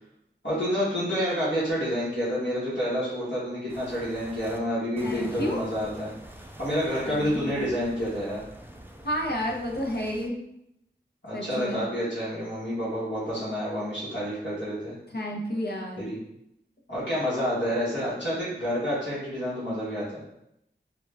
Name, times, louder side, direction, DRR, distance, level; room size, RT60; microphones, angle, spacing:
voice 1, 0.4-6.1 6.6-8.4 11.2-14.9 16.0-16.2 16.9-20.3, equal, 75° left, -10 dB, 1.5 m, -29 dB
sound 1, 3.7-4.6 5.0-10.3, right 1 dB, 10° right, 0.4 m, -45 dB
voice 2, 5.0-5.6 7.0-7.7 9.0-10.4 11.3-11.8 15.1-16.1, equal, 60° left, -1 dB, 0.7 m, -31 dB
3.7 x 2.3 x 3.3 m, 0.81 s
wide cardioid pair, 55°, 19 cm